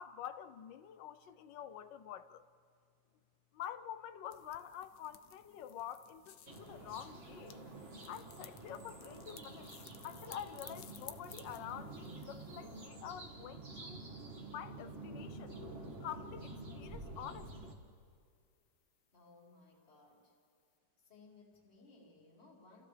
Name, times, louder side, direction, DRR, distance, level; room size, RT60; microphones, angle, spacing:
voice 1, 0.0-2.5 3.5-7.6 8.1-9.7 10.0-14.0 14.5-15.6 16.0-17.8, left 10 dB, 80° left, 1.4 m, -47 dB
sound 1, 4.3-12.9, left 9 dB, 60° left, 0.9 m, -57 dB
sound 2, 6.5-17.7, right 2 dB, 35° right, 2.0 m, -49 dB
voice 2, 19.1-20.3 21.0-22.9, left 3 dB, 35° left, 2.7 m, -61 dB
30.0 x 28.5 x 3.3 m
omnidirectional pair, 2.0 m